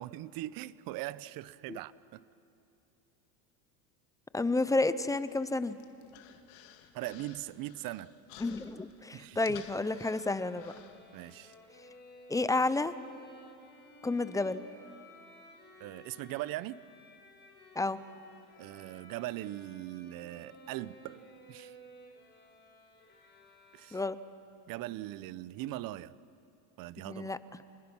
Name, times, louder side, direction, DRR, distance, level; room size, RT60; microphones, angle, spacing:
voice 1, 0.0-2.2 6.9-8.1 9.1-9.6 11.1-11.5 15.8-16.8 18.6-21.2 21.5-21.8 23.7-24.0 24.7-26.1 26.8-27.3, right 16 dB, 50° right, 0.7 m, -40 dB
voice 2, 4.3-5.8 8.4-10.7 12.3-12.9 14.0-14.6 17.8-18.0 23.9-24.2 27.1-27.4, left 2 dB, 10° left, 0.5 m, -30 dB
Human voice, 5.3-11.5, left 10 dB, 75° left, 1.9 m, -55 dB
Bowed string instrument, 9.8-24.4, equal, 25° left, 4.9 m, -55 dB
27.5 x 20.5 x 6.1 m
supercardioid pair, 115°, 45 cm